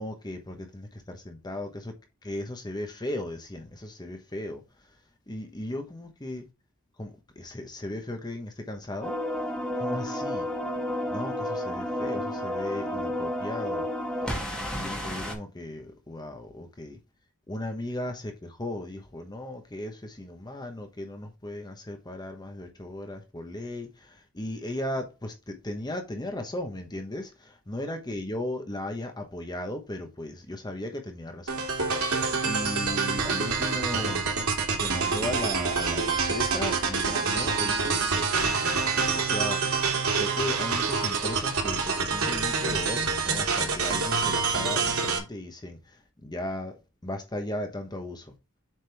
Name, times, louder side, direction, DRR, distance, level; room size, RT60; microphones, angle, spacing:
voice 1, 0.0-1.7 2.2-4.6 5.3-6.5 7.0-9.1 9.8-10.5 11.1-13.9 14.7-17.0 17.5-31.7 32.1-34.3 34.8-48.3, left 1 dB, 20° left, 1.1 m, -36 dB
sound 1, 9.0-15.3, left 1 dB, 5° left, 2.9 m, -31 dB
sound 2, 31.5-45.2, right 5 dB, 90° right, 2.6 m, -27 dB
7.7 x 5.2 x 3.4 m
head